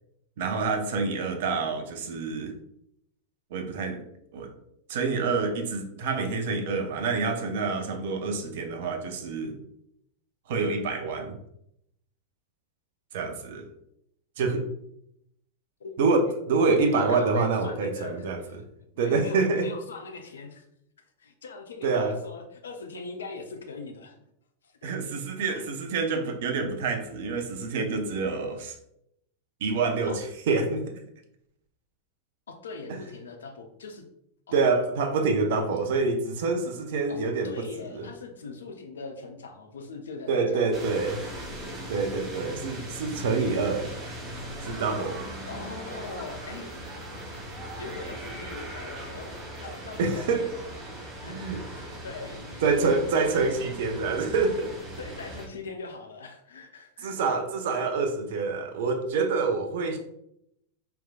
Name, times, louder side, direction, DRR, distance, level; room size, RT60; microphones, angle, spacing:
voice 1, 0.4-2.5 3.5-4.0 4.3-4.5 4.9-9.6 10.5-11.4 13.1-13.7 14.4-14.7 16.0-18.4 19.0-19.7 21.8-22.2 24.8-28.8 29.6-30.9 32.9-33.0 34.5-37.6 37.9-38.1 40.3-41.2 41.9-43.9 44.6-45.2 50.0-50.5 51.3-51.6 52.6-54.7 57.0-60.0, right 4 dB, 55° right, 5 dB, 0.7 m, -27 dB
voice 2, 15.8-16.1 16.9-18.6 18.9-20.6 21.2-24.2 24.6-24.8 25.5-25.6 30.0-30.2 32.5-34.1 34.5-34.6 37.1-40.8 45.5-46.7 47.8-50.7 51.2-52.6 55.0-57.2, left 4 dB, 65° left, 4 dB, 0.7 m, -41 dB
sound 1, 40.7-55.5, right 1 dB, 25° right, 1.2 m, -39 dB
4.6 x 3.5 x 2.3 m, 0.77 s
figure-of-eight pair, 90°, 0 cm